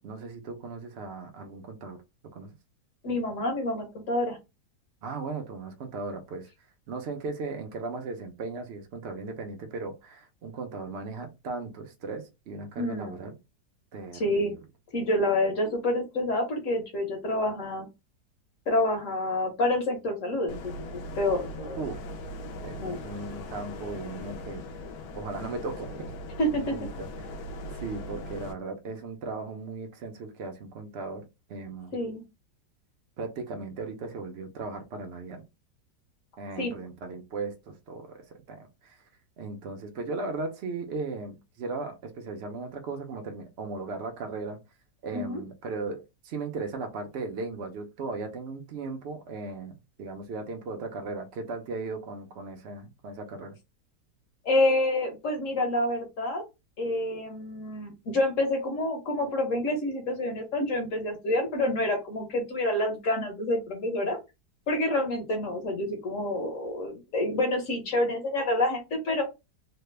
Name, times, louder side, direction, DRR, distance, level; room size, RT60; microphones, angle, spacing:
voice 1, 0.0-2.0 2.3-2.6 5.0-6.5 6.9-13.4 13.9-14.6 21.8-22.0 22.6-24.6 25.1-26.1 26.5-27.1 27.8-31.2 31.5-32.0 33.2-35.4 36.4-38.2 38.5-38.9 39.4-44.6 45.0-49.7 50.0-53.5, right 3 dB, 60° right, 0.7 m, -37 dB
voice 2, 3.0-4.4 12.8-13.2 14.1-14.5 14.9-17.9 18.7-21.8 22.8-23.0 26.4-26.7 31.9-32.2 36.6-36.7 45.1-45.4 54.4-56.4 56.8-64.2 64.7-69.2, left 1 dB, 55° left, 1.2 m, -28 dB
sound 1, 20.5-28.5, left 1 dB, 70° left, 1.0 m, -39 dB
3.2 x 2.1 x 3.2 m
omnidirectional pair, 1.8 m